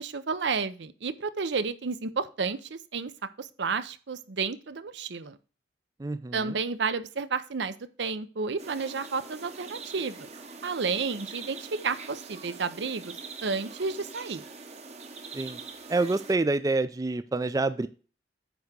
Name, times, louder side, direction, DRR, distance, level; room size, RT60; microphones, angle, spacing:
voice 1, 0.0-3.1 3.4-5.4 6.3-10.3 10.6-13.1 13.4-14.4, right 5 dB, 75° right, 13 dB, 0.6 m, -31 dB
voice 2, 6.0-6.6 15.3-15.6 15.9-17.9, right 3 dB, 20° right, 13 dB, 0.3 m, -27 dB
sound 1, 8.6-16.3, right 4 dB, 35° right, 0.9 m, -44 dB
9.3 x 3.6 x 6.6 m, 0.36 s
head